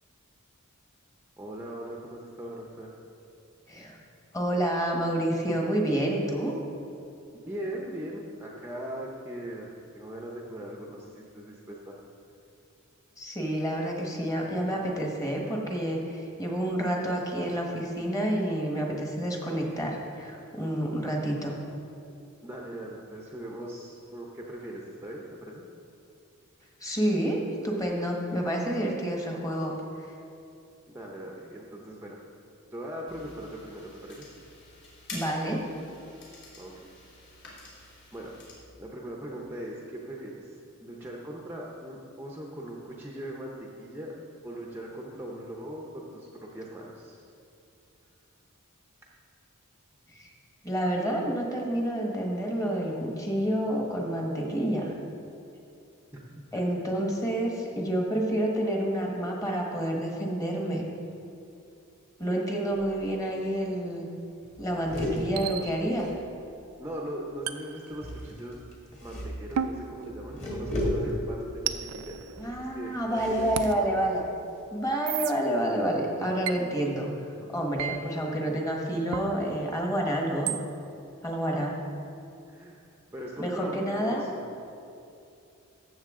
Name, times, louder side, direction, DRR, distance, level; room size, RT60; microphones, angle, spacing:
voice 1, 1.4-2.9 7.3-12.0 22.4-25.6 30.9-32.2 32.7-34.3 36.6-36.9 38.1-38.4 38.8-44.1 44.4-47.2 56.1-56.2 65.0-65.2 66.8-68.6 69.0-72.2 72.5-73.9 82.5-82.8 83.1-84.4, right 1 dB, 10° right, -2 dB, 0.7 m, -40 dB
voice 2, 4.3-6.5 13.2-21.5 26.8-29.7 35.1-35.6 50.1-50.3 50.6-54.9 56.5-60.8 62.2-64.1 64.6-66.1 72.4-74.2 74.7-77.1 77.5-80.5 81.2-81.8 83.4-84.2, right 1 dB, 15° left, 0 dB, 1.3 m, -29 dB
sound 1, 33.1-38.5, left 2 dB, 60° left, 2.6 m, -48 dB
sound 2, 62.7-63.2 63.5-63.6 63.8-64.1 64.4-66.8 67.9-74.8, left 1 dB, 30° left, 1.7 m, -36 dB
sound 3, 63.5-63.7 65.4-66.1 67.5-68.5 69.6-70.9 71.7-73.0 73.6-73.7 75.1-75.3 76.5-76.6 77.8-78.0 79.1-79.3 80.5-80.6, right 9 dB, 80° right, 0.4 m, -35 dB
14.0 x 6.8 x 3.7 m, 2.6 s
head